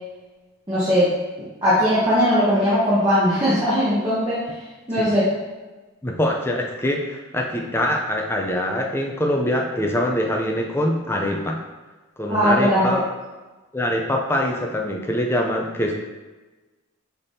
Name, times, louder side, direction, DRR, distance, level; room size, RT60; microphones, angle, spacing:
voice 1, 0.7-1.1 1.6-4.4 4.9-5.3 12.3-13.0, equal, 20° right, -11 dB, 1.1 m, -19 dB
voice 2, 6.0-11.6 12.2-13.0 13.7-16.0, left 1 dB, 10° left, 0 dB, 0.4 m, -24 dB
5.6 x 3.4 x 2.7 m, 1.2 s
head